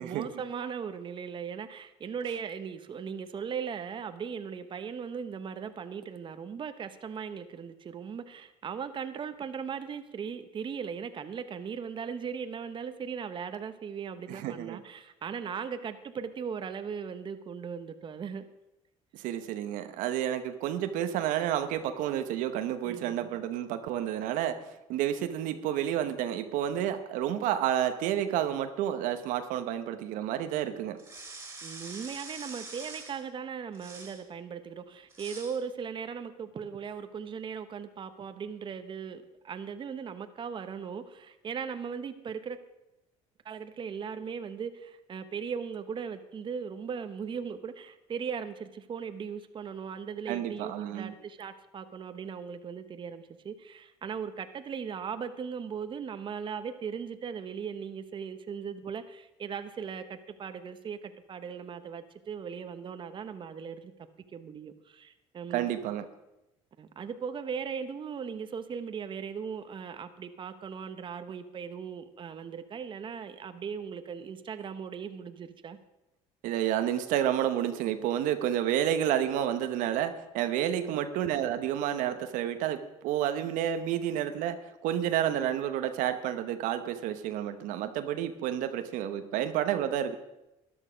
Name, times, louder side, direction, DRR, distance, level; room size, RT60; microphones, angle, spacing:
voice 1, 0.0-18.5 22.8-23.3 31.6-42.6 43.4-63.9 64.3-65.7 66.8-75.8 80.8-81.0, right 6 dB, 40° right, 10 dB, 0.9 m, -38 dB
voice 2, 14.3-14.8 19.1-24.6 24.9-31.0 50.3-51.1 65.5-66.1 76.4-90.1, right 11 dB, 80° right, 9 dB, 1.0 m, -30 dB
sound 1, 31.0-33.2 33.7-34.2 35.1-35.6, right 3 dB, 20° right, 2.8 m, -44 dB
13.0 x 11.0 x 5.1 m, 0.93 s
cardioid pair, 100°, 13 cm